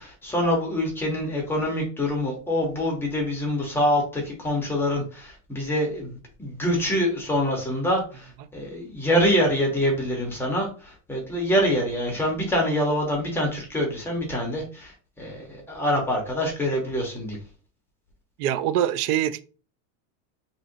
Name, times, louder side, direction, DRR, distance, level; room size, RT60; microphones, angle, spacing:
voice 1, 0.0-8.3 8.5-14.9 15.2-17.4, equal, 5° left, 0.5 m, -25 dB
voice 2, 18.4-19.4, right 11 dB, 85° right, 0.5 m, -24 dB
2.8 x 2.6 x 3.8 m
supercardioid pair, 165°, 44 cm